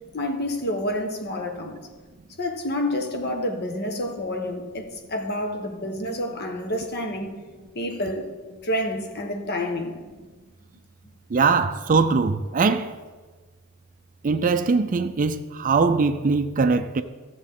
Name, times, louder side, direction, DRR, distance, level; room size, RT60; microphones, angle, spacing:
voice 1, 0.1-1.9 2.4-7.3 7.7-8.3 8.6-10.0, left 1 dB, 45° left, 1.1 m, -28 dB
voice 2, 11.3-12.9 14.2-17.0, right 4 dB, 35° right, 0.4 m, -21 dB
15.0 x 7.2 x 3.7 m
head